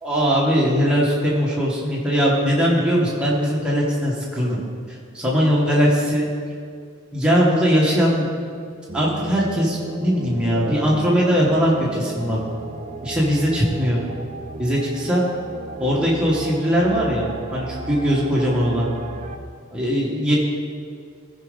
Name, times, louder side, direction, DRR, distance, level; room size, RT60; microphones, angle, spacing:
voice 1, 0.0-4.6 4.9-6.3 7.1-8.3 8.9-12.4 13.0-14.0 14.6-15.2 15.8-18.9 19.7-20.4, equal, 5° right, -5 dB, 1.7 m, -20 dB
sound 1, 8.9-19.4, right 2 dB, 30° right, 0.5 m, -35 dB
15.5 x 5.3 x 5.3 m, 2.2 s
head